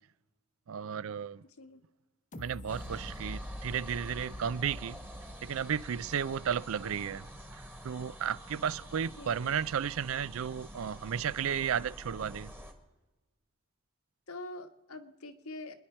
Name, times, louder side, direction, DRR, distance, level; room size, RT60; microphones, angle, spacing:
voice 1, 0.7-1.4 2.4-5.0 5.4-12.5, right 8 dB, 65° right, 0.4 m, -34 dB
sound 1, 2.3-7.2 7.7-7.8, left 1 dB, 35° left, 0.8 m, -47 dB
sound 2, 2.7-12.7, equal, 10° right, 1.4 m, -47 dB
voice 2, 9.2-9.5 14.3-15.8, left 2 dB, 75° left, 1.4 m, -45 dB
28.0 x 11.0 x 4.4 m
head